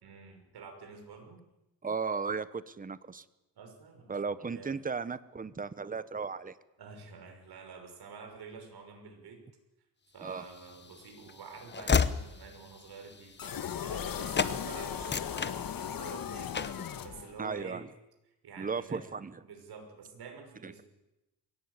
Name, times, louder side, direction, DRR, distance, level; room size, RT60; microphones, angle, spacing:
voice 1, 0.0-1.4 3.6-4.7 6.8-9.4 10.1-16.7 17.0-17.8 18.4-19.0 19.4-20.8, right 5 dB, 65° right, 4 dB, 6.1 m, -48 dB
voice 2, 1.8-3.2 4.1-6.6 10.2-10.4 17.4-17.8 18.6-19.3 20.6-20.7, right 5 dB, 20° right, 15 dB, 1.1 m, -35 dB
Train / Slam, 10.5-14.1 14.3-14.6 14.9-16.1 16.5-16.9, left 6 dB, 25° left, 1.1 m, -32 dB
sound 1, 13.4-17.6, left 8 dB, 55° left, 1.7 m, -37 dB
23.0 x 17.5 x 9.8 m, 0.97 s
cardioid pair, 115°, 41 cm